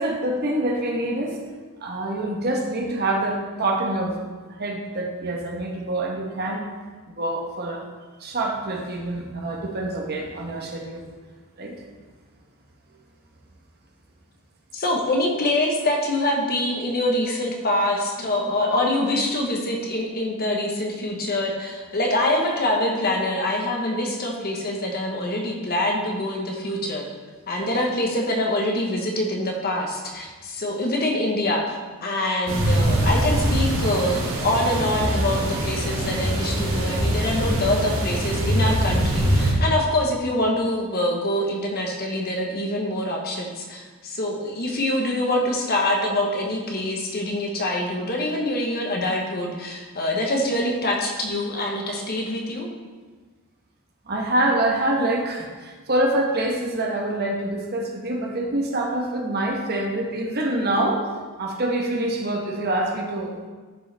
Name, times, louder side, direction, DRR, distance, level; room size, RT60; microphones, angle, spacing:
voice 1, 0.0-1.4 1.8-4.2 4.6-6.6 7.2-7.8 8.2-11.0 11.6-11.7 18.2-18.3 54.1-61.0 61.4-63.5, right 1 dB, 45° right, 0 dB, 1.1 m, -25 dB
voice 2, 14.7-27.1 27.5-52.7, left 1 dB, 45° left, 1 dB, 1.1 m, -25 dB
sound 1, 32.5-39.5, right 1 dB, 65° right, 1.9 m, -23 dB
11.0 x 5.3 x 3.4 m, 1.4 s
head